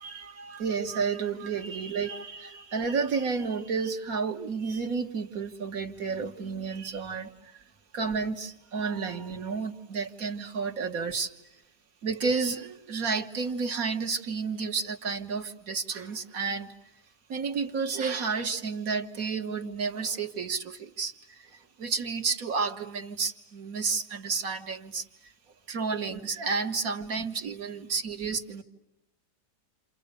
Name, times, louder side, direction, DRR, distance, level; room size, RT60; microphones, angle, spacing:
voice 1, 0.0-7.6 7.9-11.3 12.0-16.7 17.3-25.3 25.7-28.6, right 5 dB, 60° right, 1.9 m, -31 dB
29.5 x 28.5 x 6.6 m
omnidirectional pair, 1.8 m